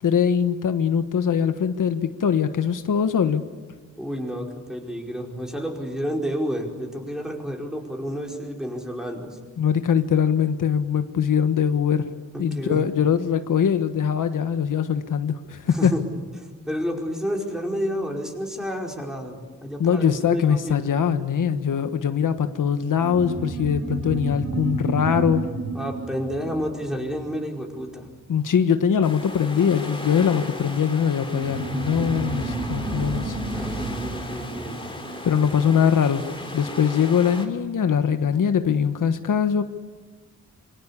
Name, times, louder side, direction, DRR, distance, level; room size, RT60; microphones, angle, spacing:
voice 1, 0.0-3.4 9.6-12.1 12.4-15.9 19.8-25.5 28.3-33.7 35.2-36.2 36.5-39.6, left 7 dB, 85° left, 9 dB, 1.4 m, -22 dB
voice 2, 4.0-9.4 12.3-12.9 15.7-16.2 16.7-20.7 25.7-28.1 33.4-34.8, equal, ahead, 1 dB, 5.0 m, -30 dB
sound 1, 22.9-27.9 31.3-36.2, right 3 dB, 55° right, 7.7 m, -31 dB
sound 2, 29.0-37.5, left 2 dB, 15° left, 3.3 m, -36 dB
26.5 x 25.0 x 8.5 m, 1.4 s
wide cardioid pair, 145°, 31 cm